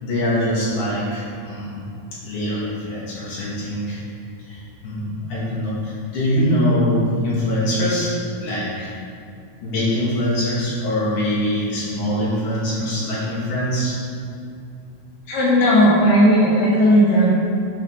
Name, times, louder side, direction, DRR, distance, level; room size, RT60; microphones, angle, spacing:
voice 1, 0.0-1.8 2.2-4.0 4.5-8.9 9.6-14.0, equal, 55° left, -9 dB, 3.5 m, -23 dB
voice 2, 15.3-17.3, equal, 80° left, -6 dB, 3.3 m, -15 dB
11.5 x 5.4 x 3.7 m, 2.5 s
omnidirectional pair, 4.6 m